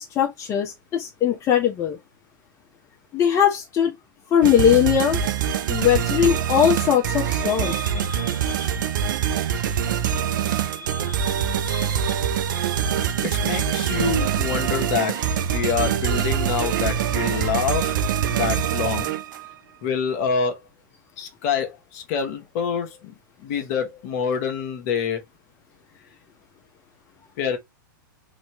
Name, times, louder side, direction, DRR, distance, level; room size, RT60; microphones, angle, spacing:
voice 1, 0.0-2.0 3.1-4.0 4.3-5.2 5.7-8.7 10.7-12.1 12.5-12.8, left 9 dB, 25° left, 0.8 m, -21 dB
sound 1, 4.4-19.5, right 8 dB, 65° right, 0.6 m, -24 dB
voice 2, 13.2-17.9 18.3-19.1 19.8-20.6 21.2-25.2 27.4-27.6, left 6 dB, 50° left, 1.0 m, -26 dB
3.1 x 2.8 x 3.1 m
hypercardioid pair, 115°, 11 cm